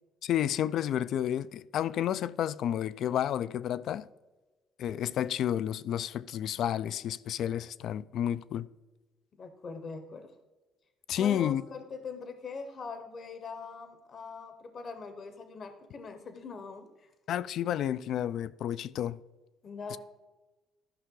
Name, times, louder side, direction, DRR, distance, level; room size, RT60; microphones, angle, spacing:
voice 1, 0.2-4.1 4.8-8.7 11.1-11.6 17.3-19.2 19.9-20.0, left 10 dB, 65° left, 0.3 m, -31 dB
voice 2, 9.4-10.3 11.2-17.1 19.6-20.0, left 4 dB, 45° left, 0.9 m, -42 dB
13.0 x 5.6 x 3.8 m
cardioid pair, 95°, 0 cm